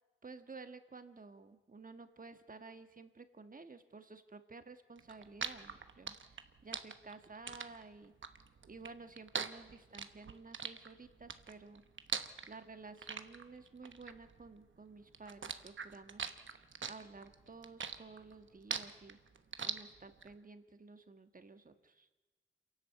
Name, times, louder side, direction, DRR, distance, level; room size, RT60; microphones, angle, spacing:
voice 1, 0.2-8.1 8.7-11.8 12.5-16.3 16.8-19.2 19.6-22.1, right 4 dB, 40° right, 9 dB, 1.5 m, -53 dB
sound 1, 5.0-14.8 15.1-20.3, right 6 dB, 65° right, 1.1 m, -42 dB
27.5 x 11.5 x 8.3 m, 1.2 s
wide cardioid pair, 85°, 21 cm